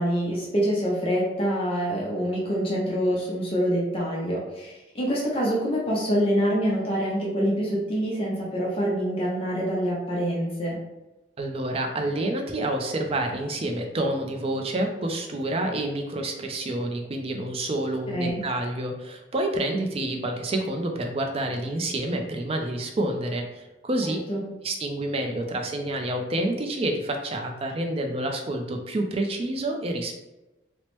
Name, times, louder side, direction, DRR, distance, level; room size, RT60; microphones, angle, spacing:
voice 1, 0.0-10.8 18.1-18.4 24.3-24.5, equal, 30° left, -4 dB, 0.6 m, -26 dB
voice 2, 11.4-24.2 24.6-30.2, right 1 dB, 30° right, 3 dB, 0.4 m, -28 dB
3.0 x 2.0 x 3.0 m, 1.0 s
head